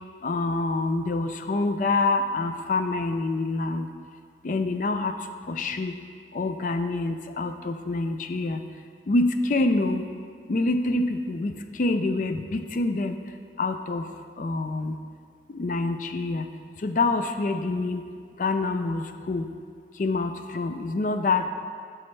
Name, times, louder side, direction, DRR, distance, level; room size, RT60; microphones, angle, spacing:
voice 1, 0.2-3.9 4.4-5.1 5.5-6.0 6.3-8.6 9.1-10.0 10.5-13.2 13.6-14.1 14.4-15.0 15.5-16.5 16.8-18.1 18.4-19.5 20.0-21.5, left 2 dB, 45° left, 8 dB, 0.4 m, -26 dB
10.0 x 6.3 x 3.2 m, 2.1 s
head